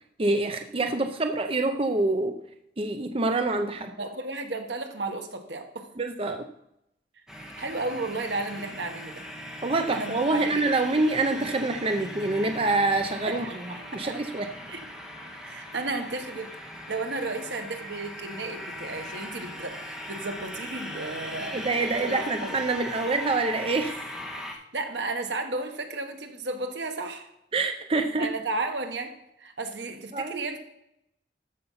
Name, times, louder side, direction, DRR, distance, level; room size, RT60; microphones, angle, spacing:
voice 1, 0.2-2.4 2.8-3.9 6.0-6.4 9.6-13.4 13.9-14.5 21.5-24.1 27.5-28.3 30.1-30.4, right 2 dB, 30° right, 6 dB, 0.6 m, -26 dB
voice 2, 4.0-5.9 7.3-9.2 9.9-10.6 13.3-13.6 13.9-14.1 14.7-14.8 15.4-16.5 16.9-21.7 22.0-22.6 24.7-27.3 28.2-29.1 29.4-30.6, right 2 dB, 80° right, 5 dB, 1.5 m, -33 dB
sound 1, 7.3-24.5, equal, 5° right, 1.6 m, -39 dB
13.5 x 5.4 x 5.6 m, 0.82 s
head